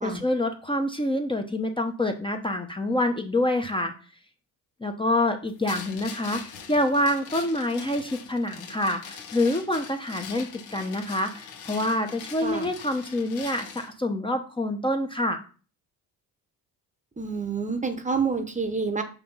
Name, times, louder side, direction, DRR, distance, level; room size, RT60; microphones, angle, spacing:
voice 1, 0.0-3.9 4.8-15.4, left 1 dB, 15° left, 4 dB, 0.7 m, -26 dB
sound 1, 5.7-13.9, left 7 dB, 85° left, 1.4 m, -42 dB
voice 2, 17.2-19.0, right 5 dB, 20° right, 7 dB, 0.8 m, -28 dB
5.8 x 3.4 x 5.4 m, 0.37 s
cardioid pair, 95°, 39 cm